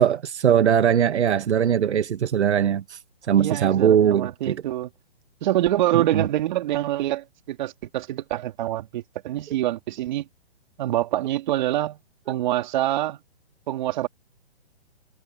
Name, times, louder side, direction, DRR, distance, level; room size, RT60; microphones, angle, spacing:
voice 1, 0.0-3.0 3.3-4.6 5.9-6.3, right 9 dB, 75° right, 1.3 m, -20 dB
voice 2, 3.4-4.9 5.4-10.3 10.8-12.0 12.3-13.2 13.7-14.1, right 14 dB, 40° right, 2.7 m, -25 dB
hypercardioid pair, 150°, 34 cm